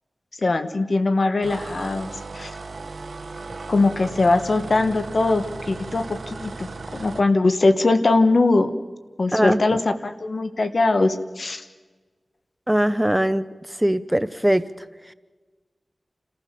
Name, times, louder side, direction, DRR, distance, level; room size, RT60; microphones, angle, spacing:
voice 1, 0.4-2.6 3.7-8.7 9.2-11.6, left 3 dB, 65° left, 9 dB, 1.4 m, -21 dB
sound 1, 1.4-7.3, right 3 dB, 80° right, 1.2 m, -36 dB
voice 2, 9.3-9.6 12.7-13.5 13.8-14.6, right 1 dB, 10° right, 14 dB, 0.7 m, -20 dB
29.0 x 14.5 x 6.9 m, 1.3 s
wide cardioid pair, 55°, 0 cm